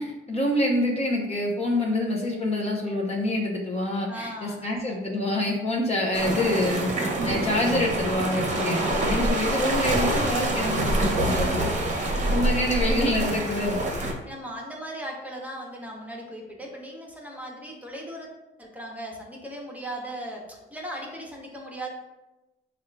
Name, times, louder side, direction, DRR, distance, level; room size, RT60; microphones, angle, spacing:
voice 1, 0.0-6.9 7.2-11.7 12.3-14.1, left 1 dB, 30° left, -2 dB, 0.7 m, -26 dB
voice 2, 4.1-5.0 12.1-12.8 14.3-18.3 18.6-21.9, right 1 dB, 5° right, -1 dB, 0.9 m, -38 dB
sound 1, 6.1-14.1, right 1 dB, 40° right, 0.8 m, -26 dB
3.5 x 2.4 x 4.5 m, 1.0 s
cardioid pair, 90°, 20 cm